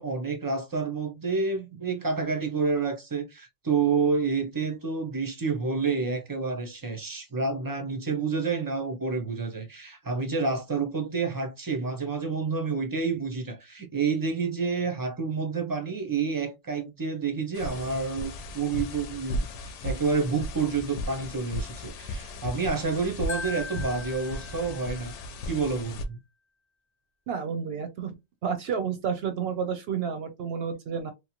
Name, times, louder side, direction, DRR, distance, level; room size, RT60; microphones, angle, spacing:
voice 1, 0.0-25.1 25.4-26.2, right 4 dB, 25° right, 0.4 m, -29 dB
sound 1, 17.5-26.0, left 1 dB, 70° left, 0.9 m, -36 dB
Marimba xylophone, 23.3-25.4, left 4 dB, 35° left, 0.4 m, -39 dB
voice 2, 27.3-28.1 28.4-31.1, right 7 dB, 60° right, 0.7 m, -30 dB
2.9 x 2.2 x 2.8 m
omnidirectional pair, 1.3 m